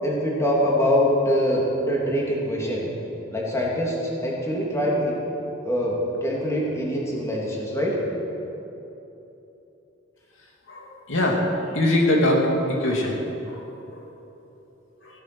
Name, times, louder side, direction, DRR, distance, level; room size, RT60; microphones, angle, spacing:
voice 1, 0.0-2.9 3.3-5.1 5.6-8.0, equal, 15° left, -3 dB, 2.7 m, -24 dB
voice 2, 10.7-11.4 11.7-12.4 12.8-13.2 13.5-13.6 13.9-14.0, left 1 dB, 80° left, -1 dB, 2.5 m, -22 dB
16.0 x 12.5 x 6.2 m, 3.0 s
head